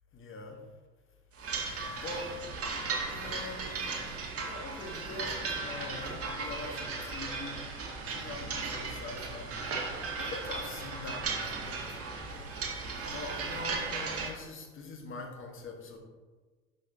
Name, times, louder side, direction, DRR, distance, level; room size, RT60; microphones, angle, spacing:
voice 1, 0.1-0.6 1.5-2.3 3.1-3.8 4.4-7.6 8.1-16.0, left 3 dB, 30° left, 1 dB, 2.0 m, -44 dB
sound 1, 1.4-14.3, right 4 dB, 35° right, 2.0 m, -36 dB
11.5 x 6.3 x 3.1 m, 1.3 s
figure-of-eight pair, 75°, 42 cm